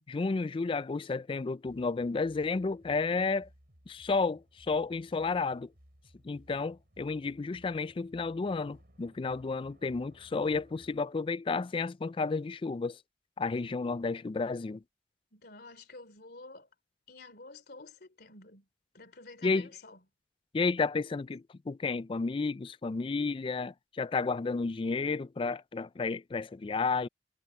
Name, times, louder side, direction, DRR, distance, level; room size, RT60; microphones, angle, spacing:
voice 1, 0.1-3.5 3.9-5.7 6.2-13.0 13.4-14.8 19.4-19.7 20.5-27.1, left 4 dB, 30° left, 0.3 m, -32 dB
sound 1, 1.6-11.0, equal, 60° right, 6.2 m, -61 dB
voice 2, 15.3-16.7 17.1-18.6 18.9-20.0, left 3 dB, 60° left, 3.2 m, -50 dB
head